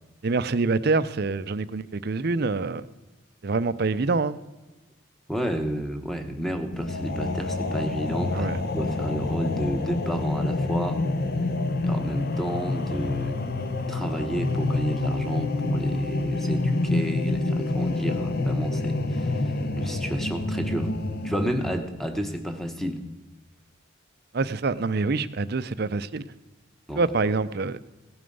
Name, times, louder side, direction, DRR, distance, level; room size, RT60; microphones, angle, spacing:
voice 1, 0.2-2.8 3.4-4.4 8.3-8.6 24.3-26.3 26.9-27.8, right 3 dB, 50° right, 14 dB, 0.5 m, -26 dB
voice 2, 5.3-8.5 8.7-11.0 11.8-13.4 13.9-20.9 21.2-23.0 26.9-27.0, equal, ahead, 6 dB, 1.0 m, -31 dB
sound 1, 6.7-21.7, left 2 dB, 50° left, 0.8 m, -27 dB
17.0 x 11.0 x 5.4 m, 1.2 s
head